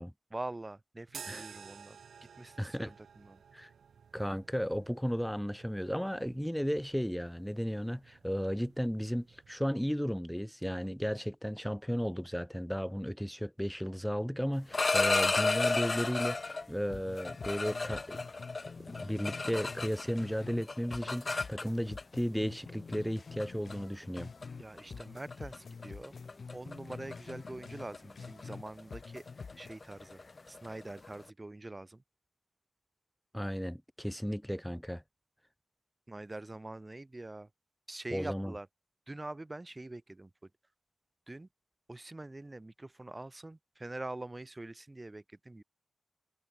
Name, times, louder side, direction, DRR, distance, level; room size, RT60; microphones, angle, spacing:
voice 1, 0.3-2.0 2.4-3.4 24.6-26.1 26.5-29.2 29.6-30.2 30.5-32.0 36.1-37.5 37.9-38.7 39.1-40.3 41.3-41.5 41.9-45.6, right 2 dB, 20° right, 2.7 m, -44 dB
sound 1, 1.1-9.6, right 7 dB, 80° right, 5.7 m, -53 dB
voice 2, 2.6-2.9 3.5-3.7 4.1-18.2 18.8-24.3 33.3-35.0 38.1-38.5, equal, ahead, 1.3 m, -34 dB
sound 2, 14.5-16.7 17.2-20.2 20.5-22.0 22.9-23.1 23.4-23.7 24.2-24.4 24.8-25.0 25.3-25.6 25.8-31.2, left 3 dB, 35° left, 0.8 m, -33 dB
sound 3, 16.6-16.7 16.9-20.6 20.9-24.6 24.9-28.6 28.9-29.7, left 5 dB, 55° left, 6.5 m, -47 dB
wide cardioid pair, 85°, 0 cm